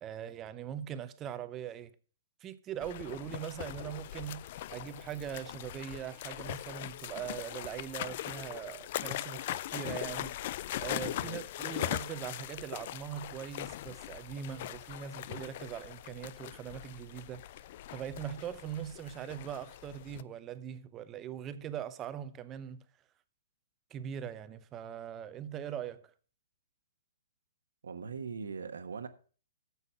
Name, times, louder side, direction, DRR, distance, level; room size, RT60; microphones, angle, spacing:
voice 1, 0.0-1.9 2.4-4.4 4.7-10.4 10.8-17.4 17.9-22.9 23.9-26.1, right 9 dB, 20° right, 0.7 m, -41 dB
sound 1, 2.8-20.2, left 14 dB, 45° left, 0.4 m, -40 dB
voice 2, 27.8-29.1, right 5 dB, 85° right, 1.2 m, -40 dB
9.6 x 7.1 x 5.7 m
hypercardioid pair, 145°, 0 cm